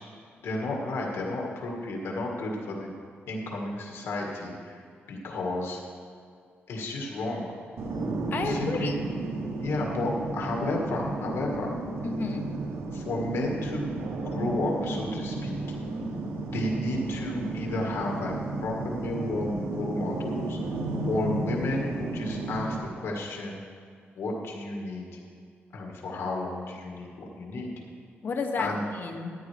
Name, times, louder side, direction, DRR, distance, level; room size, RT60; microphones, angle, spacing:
voice 1, 0.4-2.9 3.3-4.8 5.1-5.8 6.7-7.5 8.4-9.0 9.6-11.7 12.9-13.9 14.2-15.6 16.5-18.3 18.6-20.6 21.1-23.6 24.2-25.1 25.7-27.7 28.6-28.8, left 2 dB, 90° left, -1 dB, 1.8 m, -32 dB
sound 1, 7.8-22.8, right 2 dB, 80° right, 1.1 m, -33 dB
voice 2, 8.3-9.0 12.0-12.5 28.2-29.3, left 4 dB, 55° left, 4 dB, 1.1 m, -31 dB
14.0 x 10.0 x 3.4 m, 2.2 s
wide cardioid pair, 125°, 4 cm